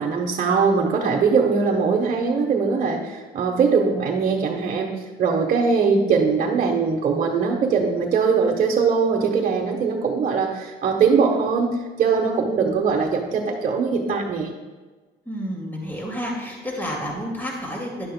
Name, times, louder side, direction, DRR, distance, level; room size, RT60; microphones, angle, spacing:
voice 1, 0.0-4.9 5.2-11.7 12.0-14.5, right 5 dB, 45° right, -1 dB, 1.1 m, -21 dB
voice 2, 15.3-18.1, equal, 10° left, -1 dB, 2.2 m, -30 dB
12.0 x 10.5 x 2.2 m, 1.3 s
cardioid pair, 110°, 17 cm